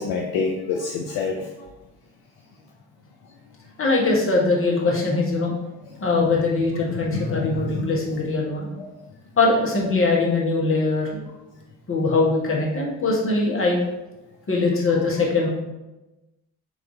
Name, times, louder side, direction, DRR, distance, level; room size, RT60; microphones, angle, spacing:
voice 1, 0.0-1.7 6.9-7.9 8.8-8.9, left 4 dB, 60° left, 1 dB, 0.6 m, -27 dB
voice 2, 3.8-5.5 6.0-8.7 9.4-11.2 11.9-13.8 14.5-15.5, left 3 dB, 30° left, -3 dB, 1.4 m, -21 dB
4.0 x 3.2 x 4.0 m, 1.0 s
figure-of-eight pair, 40°, 43 cm